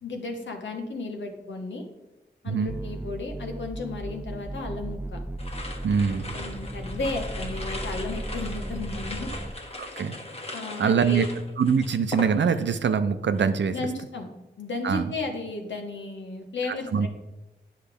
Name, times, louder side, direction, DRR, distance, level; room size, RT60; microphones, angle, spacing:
voice 1, 0.0-1.8 2.4-5.2 6.1-9.3 10.5-11.3 13.7-14.3 14.6-17.1, left 2 dB, 90° left, 3 dB, 1.2 m, -34 dB
sound 1, 2.7-9.5, right 1 dB, 10° right, 0.4 m, -35 dB
sound 2, 5.4-12.8 13.1-13.6, left 2 dB, 35° left, 1.4 m, -39 dB
voice 2, 5.8-6.3 9.8-10.1 10.8-11.2 11.6-13.7 14.8-15.1 16.7-17.1, right 6 dB, 80° right, 10 dB, 0.6 m, -24 dB
9.7 x 5.6 x 3.5 m, 0.97 s
cardioid pair, 55°, 18 cm